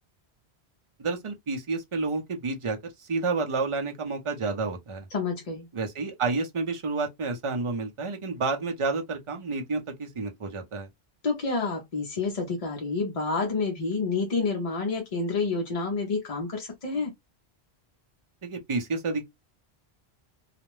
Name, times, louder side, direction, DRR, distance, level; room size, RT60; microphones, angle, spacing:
voice 1, 1.0-5.1 5.7-10.9 18.4-19.2, right 3 dB, 35° right, 0.6 m, -30 dB
voice 2, 5.1-5.7 11.2-17.1, left 4 dB, 45° left, 0.6 m, -29 dB
2.4 x 2.1 x 3.0 m
omnidirectional pair, 1.1 m